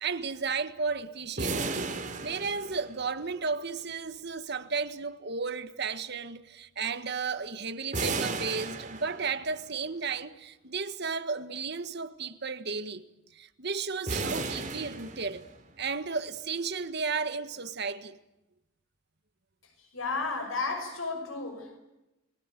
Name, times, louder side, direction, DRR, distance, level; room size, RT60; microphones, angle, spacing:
voice 1, 0.0-1.9 2.2-13.0 13.3-15.4 15.8-18.2, right 5 dB, 55° right, 1.6 m, -34 dB
sound 1, 1.4-3.3 7.9-9.6 14.1-15.7, right 3 dB, 40° right, 3.9 m, -34 dB
voice 2, 19.9-21.8, left 3 dB, 80° left, 6.0 m, -33 dB
29.0 x 21.5 x 9.3 m
head